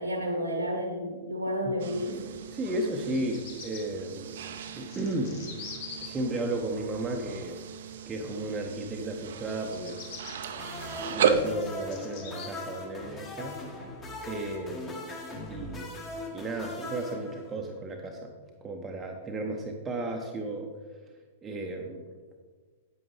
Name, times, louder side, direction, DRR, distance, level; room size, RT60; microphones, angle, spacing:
voice 1, 0.0-2.2, equal, 85° right, 2 dB, 1.2 m, -31 dB
sound 1, 1.8-11.5, right 6 dB, 55° right, 0.6 m, -34 dB
voice 2, 2.5-5.5 6.0-7.6 8.1-10.0 11.1-13.6 14.3-15.1 15.5-16.0 16.3-18.3 18.6-20.7 21.4-22.0, right 2 dB, 15° right, 1 dB, 0.8 m, -34 dB
Bird vocalization bird call bird song, 3.0-3.8 4.6-6.1 9.6-10.3 11.0-12.5, left 6 dB, 45° left, 1.6 m, -43 dB
sound 2, 10.5-17.8, left 1 dB, 20° left, 1.6 m, -40 dB
8.8 x 8.7 x 3.2 m, 1.4 s
figure-of-eight pair, 100°, 0 cm